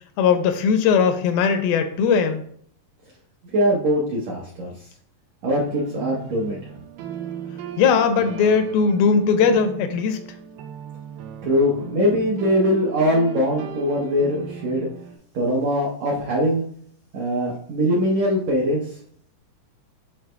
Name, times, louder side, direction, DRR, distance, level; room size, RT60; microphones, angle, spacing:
voice 1, 0.2-2.4 7.8-10.2, left 6 dB, 85° left, 8 dB, 2.4 m, -19 dB
voice 2, 3.5-4.9 5.4-6.8 11.4-14.9 15.3-16.6 17.1-19.0, equal, 70° right, -4 dB, 1.6 m, -22 dB
sound 1, 5.7-15.2, right 8 dB, 90° right, 2.5 m, -37 dB
10.5 x 4.0 x 2.2 m, 0.62 s
omnidirectional pair, 4.3 m